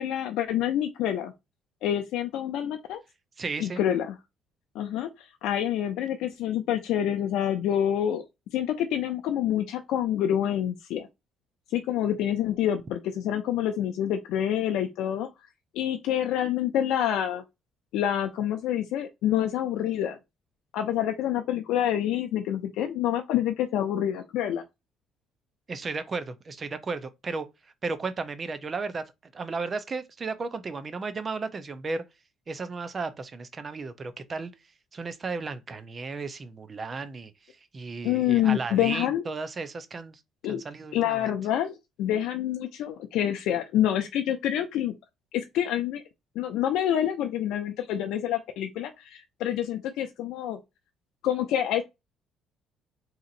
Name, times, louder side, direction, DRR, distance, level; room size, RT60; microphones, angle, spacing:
voice 1, 0.0-1.3 1.8-3.0 3.6-4.1 4.7-8.2 8.5-11.1 11.7-15.3 15.7-17.4 17.9-20.2 20.7-24.6 38.0-39.2 40.4-40.6 40.9-44.9 45.3-46.0 46.4-50.6 51.2-51.8, left 11 dB, 80° left, 0.4 m, -27 dB
voice 2, 3.4-3.8 25.7-27.5 27.8-32.1 32.5-34.5 34.9-37.3 37.7-40.2 40.5-41.3, right 4 dB, 30° right, 0.5 m, -34 dB
2.8 x 2.5 x 3.8 m
cardioid pair, 130°, 0 cm